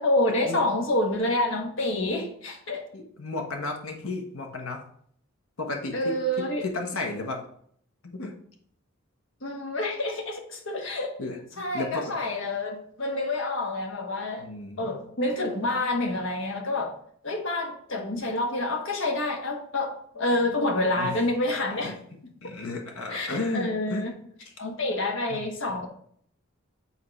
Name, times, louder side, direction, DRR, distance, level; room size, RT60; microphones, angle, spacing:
voice 1, 0.0-2.8 5.9-6.6 9.4-11.1 11.6-14.5 14.8-16.9 17.2-21.9 23.1-24.1 24.6-25.9, left 2 dB, 65° left, 2 dB, 1.4 m, -28 dB
voice 2, 2.9-4.8 5.6-6.1 6.6-7.4 8.0-8.3 11.2-12.0 14.4-15.0 21.0-21.2 21.8-22.0 22.4-24.1 25.3-25.4 25.7-25.8, left 2 dB, 85° left, 2 dB, 1.2 m, -33 dB
8.6 x 4.2 x 3.3 m, 0.63 s
head